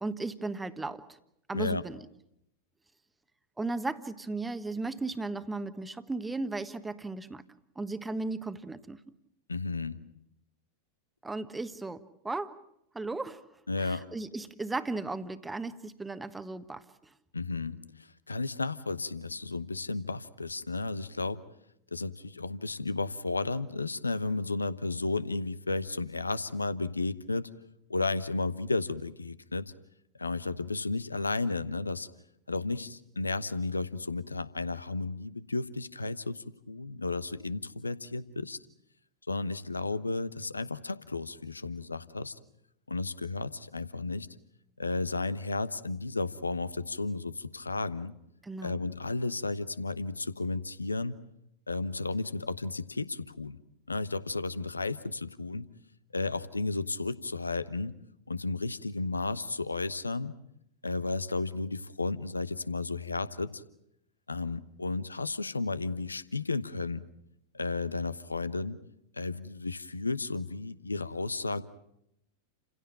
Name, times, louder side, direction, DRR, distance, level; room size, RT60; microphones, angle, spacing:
voice 1, 0.0-1.0 1.5-2.0 3.6-7.4 7.7-9.0 11.2-12.6 12.9-13.4 13.8-16.8 48.4-48.8, right 3 dB, 10° right, 12 dB, 1.3 m, -36 dB
voice 2, 9.5-10.0 13.7-14.1 17.3-17.8 18.3-21.4 21.9-27.5 27.9-29.7 30.2-32.1 32.5-38.6 39.3-42.4 42.9-44.3 44.8-48.1 48.6-51.1 51.7-53.6 53.9-55.7 56.1-57.9 58.3-60.3 60.8-63.6 64.3-67.0 67.5-68.8 69.1-71.6, left 3 dB, 80° left, 15 dB, 1.0 m, -33 dB
30.0 x 16.5 x 8.9 m, 0.78 s
figure-of-eight pair, 90°, 0 cm